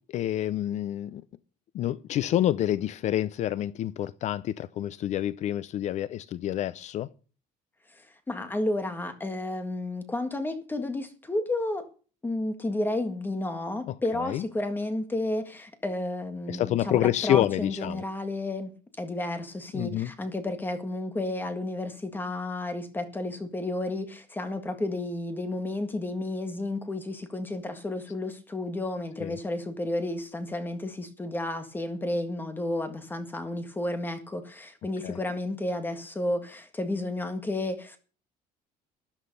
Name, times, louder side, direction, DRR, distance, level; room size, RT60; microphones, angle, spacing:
voice 1, 0.1-1.2 1.7-7.1 13.9-14.4 16.5-18.0 19.7-20.1 29.2-29.4 35.0-35.2, left 12 dB, 50° left, 0.6 m, -28 dB
voice 2, 7.9-11.9 12.2-18.7 19.0-38.0, left 2 dB, 15° left, 1.8 m, -32 dB
13.0 x 11.5 x 5.4 m
cardioid pair, 165°, 15 cm